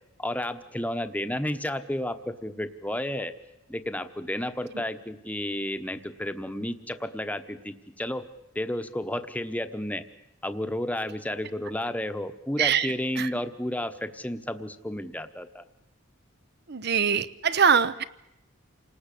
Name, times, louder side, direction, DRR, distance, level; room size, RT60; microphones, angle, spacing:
voice 1, 0.2-3.3 3.7-8.3 8.5-10.0 10.4-15.6, left 1 dB, 10° left, 9 dB, 1.1 m, -32 dB
voice 2, 12.6-13.3 16.7-18.0, right 7 dB, 55° right, 14 dB, 0.9 m, -23 dB
28.5 x 19.0 x 8.5 m, 0.89 s
head